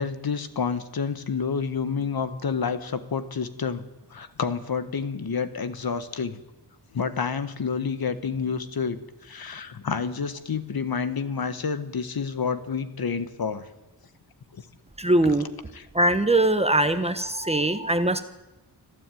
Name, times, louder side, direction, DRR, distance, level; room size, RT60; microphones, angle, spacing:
voice 1, 0.0-3.8 4.1-6.4 6.9-13.7 14.5-14.6 15.7-15.8, left 5 dB, 60° left, 11 dB, 1.6 m, -29 dB
voice 2, 15.0-15.5 15.9-18.2, right 1 dB, 15° right, 9 dB, 1.1 m, -21 dB
25.5 x 15.0 x 9.3 m, 1.0 s
wide cardioid pair, 180°, 41 cm